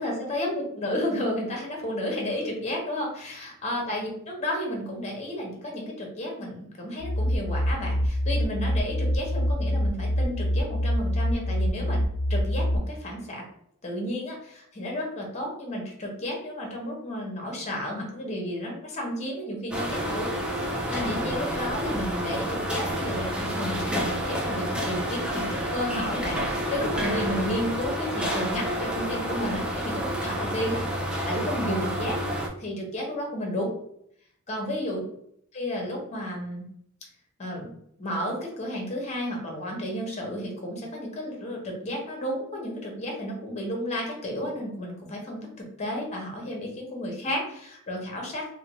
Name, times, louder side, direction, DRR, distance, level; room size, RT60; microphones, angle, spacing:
voice 1, 0.0-12.0 12.3-13.4 13.8-32.2 32.6-33.8 34.5-35.0 35.5-36.7 37.4-37.7 38.0-48.5, left 1 dB, 30° left, 0 dB, 0.8 m, -32 dB
sound 1, 7.0-12.8, equal, 60° left, 0.4 m, -26 dB
sound 2, 19.7-32.5, equal, 5° right, 0.4 m, -29 dB
2.5 x 2.5 x 3.0 m, 0.70 s
head